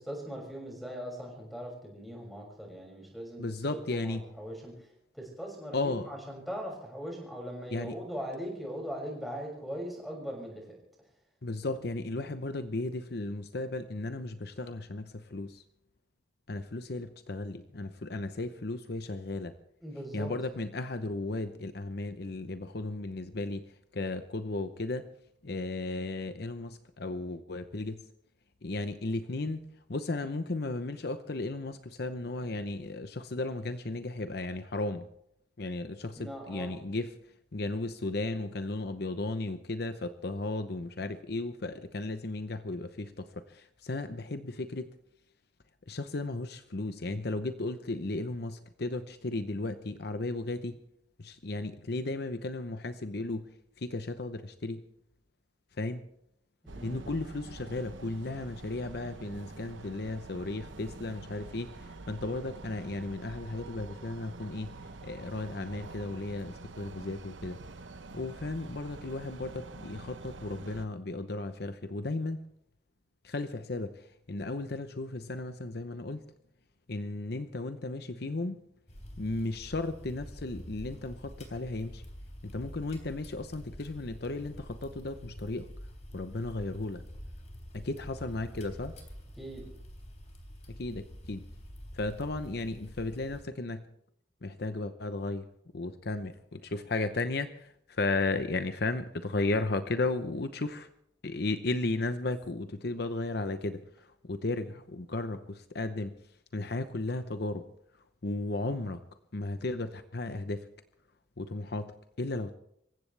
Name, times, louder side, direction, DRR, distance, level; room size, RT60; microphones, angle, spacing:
voice 1, 0.0-4.7 5.1-10.8 19.8-20.3 36.2-36.8 56.6-57.0 89.4-89.7, equal, ahead, -2 dB, 6.4 m, -40 dB
voice 2, 3.4-4.2 5.7-6.1 7.7-8.0 11.4-15.6 16.5-19.6 20.1-25.1 25.4-28.0 28.6-29.6 29.9-35.1 35.6-37.1 37.5-44.9 45.9-50.8 51.2-53.5 53.8-54.8 55.8-56.0 56.8-64.8 65.0-67.6 68.1-72.4 73.2-76.2 76.9-78.6 79.2-82.0 82.4-85.7 86.1-87.0 87.7-89.0 90.7-91.4 91.9-93.9 94.4-95.5 95.7-100.9 101.2-106.1 106.5-107.7 108.2-109.0 109.3-110.7 111.4-112.5, left 2 dB, 55° left, 9 dB, 0.8 m, -35 dB
sound 1, 56.7-70.9, right 3 dB, 80° right, 0.9 m, -46 dB
sound 2, 78.9-93.4, equal, 35° left, 3.5 m, -47 dB
26.5 x 15.5 x 3.4 m, 0.75 s
head